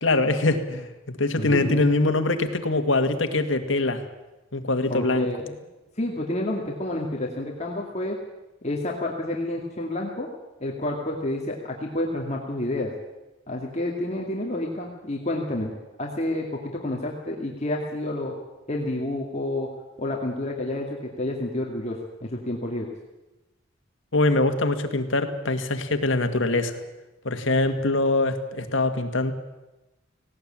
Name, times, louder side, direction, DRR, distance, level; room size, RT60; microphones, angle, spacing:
voice 1, 0.0-4.0 4.5-5.3 24.1-26.8 27.2-29.3, left 2 dB, 75° left, 8 dB, 1.9 m, -23 dB
voice 2, 1.4-1.8 4.9-5.6 6.0-8.2 8.6-10.3 10.6-12.9 13.5-15.7 16.0-18.3 18.7-19.7 20.0-22.9, left 1 dB, 35° left, -1 dB, 2.2 m, -29 dB
18.5 x 17.5 x 8.8 m, 1.0 s
head